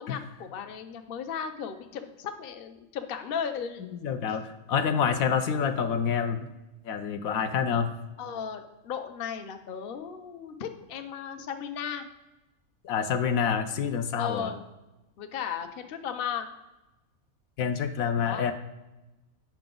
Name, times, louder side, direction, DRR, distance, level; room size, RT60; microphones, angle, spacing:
voice 1, 0.0-3.9 8.2-12.1 14.1-14.6 15.2-16.5 18.2-18.4, left 7 dB, 50° left, 7 dB, 0.7 m, -35 dB
voice 2, 3.9-6.5 6.8-7.9 12.8-14.5 17.6-18.5, left 7 dB, 75° left, 8 dB, 1.0 m, -27 dB
8.8 x 5.8 x 3.8 m, 1.0 s
omnidirectional pair, 1.5 m